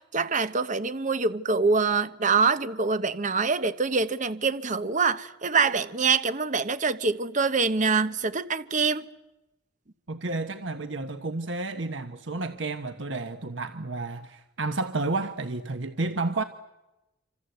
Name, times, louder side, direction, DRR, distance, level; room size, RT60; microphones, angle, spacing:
voice 1, 0.0-9.0, right 4 dB, 40° right, 1.0 m, -25 dB
voice 2, 10.1-16.4, right 3 dB, 85° right, 1.3 m, -31 dB
27.0 x 26.5 x 8.1 m
head